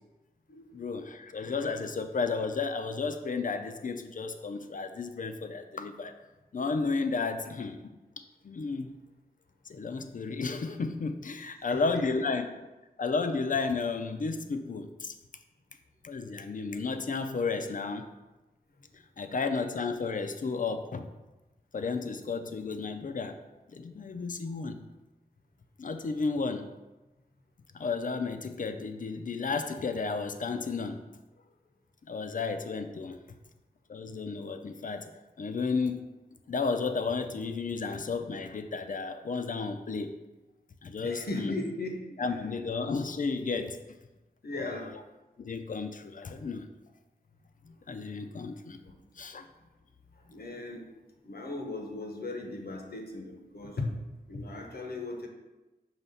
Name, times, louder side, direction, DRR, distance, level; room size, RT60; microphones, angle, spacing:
voice 1, 0.7-6.1 6.5-9.0 9.7-12.5 13.0-15.1 16.0-18.1 19.2-21.1 21.7-23.4 23.7-24.8 25.8-26.7 27.7-31.0 32.1-33.2 33.9-35.1 35.4-36.1 36.5-40.1 40.8-41.5 42.2-43.8 44.5-44.8 45.4-46.7 47.9-48.8 49.2-49.5, left 4 dB, 55° left, 8 dB, 0.5 m, -33 dB
voice 2, 11.5-12.0 41.0-42.2 44.4-44.9 47.6-47.8 48.8-48.9 50.2-50.9 51.2-53.9 54.3-55.3, left 2 dB, 75° left, 2 dB, 1.0 m, -37 dB
5.6 x 3.0 x 5.5 m, 1.1 s
wide cardioid pair, 85°, 16 cm